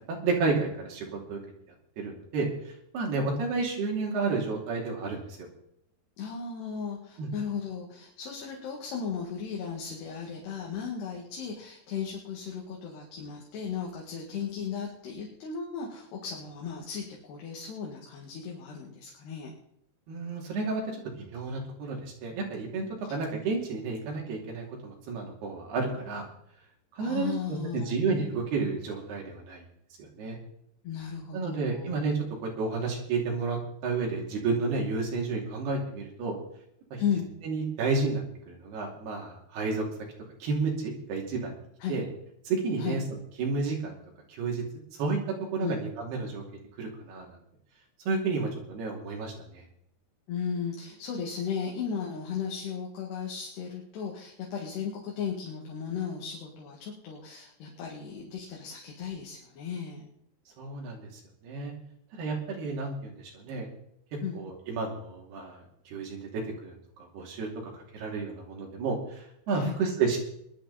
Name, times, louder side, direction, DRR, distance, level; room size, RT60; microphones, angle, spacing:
voice 1, 0.1-1.4 2.0-5.5 7.2-7.3 20.1-20.8 21.2-26.3 27.0-29.6 30.0-30.4 31.3-36.4 36.9-37.0 37.4-39.8 40.4-41.5 41.9-42.0 42.4-43.0 43.4-44.0 44.3-44.6 45.0-45.2 45.5-46.4 46.8-47.4 48.1-49.7 60.6-61.7 62.1-63.7 64.4-67.5 67.9-70.2, right 4 dB, 75° right, 0 dB, 4.8 m, -31 dB
voice 2, 6.2-19.5 27.0-28.0 30.8-32.0 37.0-37.3 41.8-42.0 42.8-43.0 45.6-45.8 50.3-60.1 64.2-64.4 69.5-69.8, left 7 dB, 85° left, -2 dB, 4.1 m, -35 dB
20.0 x 11.5 x 4.2 m, 0.74 s
omnidirectional pair, 4.7 m